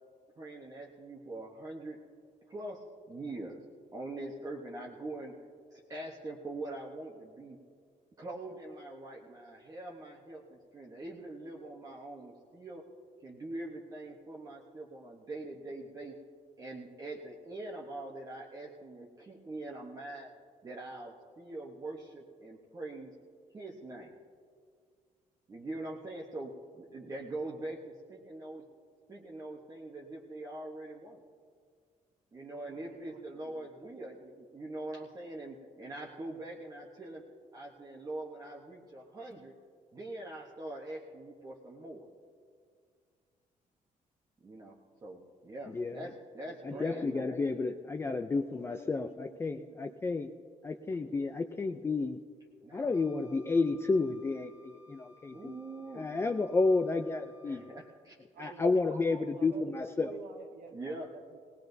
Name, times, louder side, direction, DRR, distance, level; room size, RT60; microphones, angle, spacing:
voice 1, 0.4-2.0 2.5-3.6 3.9-5.4 5.7-7.6 8.2-12.8 13.2-16.2 16.6-20.3 20.6-23.1 23.5-24.2 25.5-28.7 29.1-31.2 32.3-37.2 37.5-39.5 39.9-42.0 44.4-47.4 52.6-53.0 55.3-56.1 57.4-58.2 60.7-61.1, right 2 dB, 25° right, -3 dB, 1.0 m, -43 dB
voice 2, 32.5-34.0 46.4-47.8 48.1-49.9 58.3-61.4, right 5 dB, 80° right, 1 dB, 0.9 m, -51 dB
voice 3, 46.6-50.3 50.6-52.2 52.7-55.5 55.9-57.6 58.4-60.1, left 3 dB, 15° left, 6 dB, 0.3 m, -31 dB
Wind instrument woodwind instrument, 52.9-58.1, left 3 dB, 10° right, 1.9 m, -61 dB
19.0 x 18.5 x 2.7 m, 2.1 s
cardioid pair, 165°, 14 cm